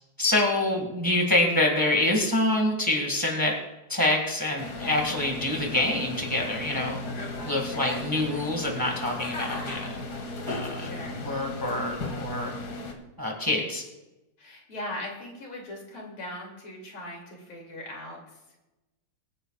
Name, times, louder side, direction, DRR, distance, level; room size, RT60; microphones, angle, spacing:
voice 1, 0.2-3.6 3.9-7.0 7.4-10.0 10.5-10.9 11.2-12.5 13.2-13.8, left 1 dB, 10° right, 1 dB, 1.8 m, -26 dB
sound 1, 4.6-12.9, left 2 dB, 55° left, 2.0 m, -35 dB
voice 2, 10.8-11.3 14.4-18.4, left 1 dB, 80° left, -1 dB, 3.7 m, -39 dB
23.5 x 10.0 x 2.4 m, 0.99 s
omnidirectional pair, 2.3 m